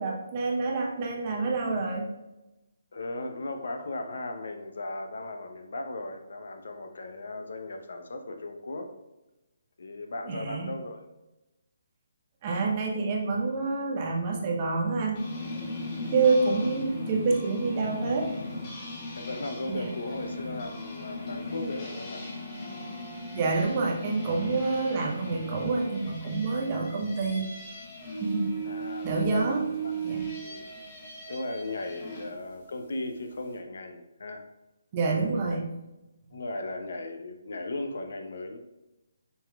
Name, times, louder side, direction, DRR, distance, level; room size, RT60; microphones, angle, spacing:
voice 1, 0.0-2.1 10.2-10.7 12.4-15.2 16.1-18.3 19.7-19.9 23.3-27.5 28.2-28.6 29.0-29.7 30.0-30.3 34.9-35.6, right 4 dB, 35° right, 0 dB, 0.7 m, -27 dB
voice 2, 2.9-8.9 9.8-11.0 16.2-16.5 19.1-22.4 28.6-29.9 30.4-30.7 31.3-34.5 35.1-35.4 36.3-38.6, left 2 dB, 70° left, 5 dB, 0.6 m, -37 dB
sound 1, 15.2-32.3, equal, 30° left, 1.0 m, -37 dB
5.5 x 3.0 x 2.3 m, 0.97 s
hypercardioid pair, 155°, 0 cm